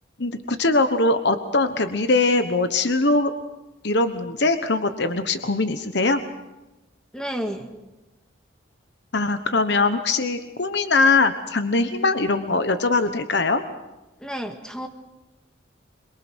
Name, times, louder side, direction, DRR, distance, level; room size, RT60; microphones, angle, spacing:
voice 1, 0.2-3.3 3.8-6.2 9.1-13.6, left 3 dB, 55° left, 9 dB, 1.2 m, -21 dB
voice 2, 7.1-7.7 14.2-14.9, equal, 5° left, 5 dB, 1.9 m, -31 dB
26.5 x 23.0 x 6.3 m, 1.0 s
head